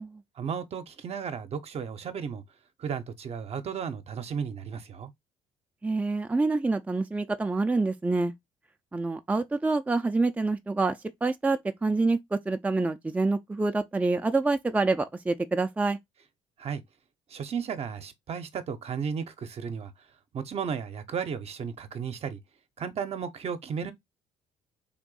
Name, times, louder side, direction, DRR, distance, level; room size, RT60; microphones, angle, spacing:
voice 1, 0.4-2.4 2.8-5.1 16.6-16.8 17.3-19.9 20.3-22.4 22.8-23.9, right 7 dB, 50° right, 0.7 m, -34 dB
voice 2, 5.8-8.3 8.9-16.0, right 3 dB, 10° right, 0.4 m, -27 dB
3.5 x 2.6 x 3.7 m
hypercardioid pair, 60°, 14 cm